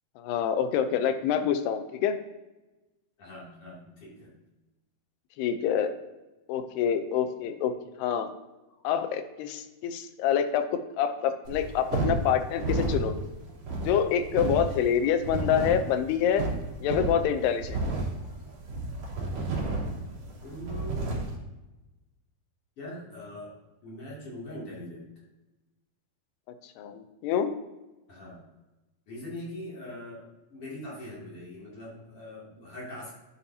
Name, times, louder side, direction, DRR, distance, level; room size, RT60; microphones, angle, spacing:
voice 1, 0.2-2.2 5.4-5.9 6.5-7.7 8.0-8.3 8.8-10.7 11.0-13.3 13.8-16.5 16.8-17.8 26.8-27.6, left 8 dB, 90° left, 8 dB, 2.7 m, -26 dB
voice 2, 3.2-4.4 17.8-18.0 20.4-21.2 22.8-25.1 28.1-28.4 29.1-33.2, left 1 dB, 40° left, -6 dB, 3.3 m, -42 dB
sound 1, 11.4-21.4, right 2 dB, 55° right, 2.2 m, -32 dB
11.0 x 7.0 x 2.8 m, 1.1 s
omnidirectional pair, 4.6 m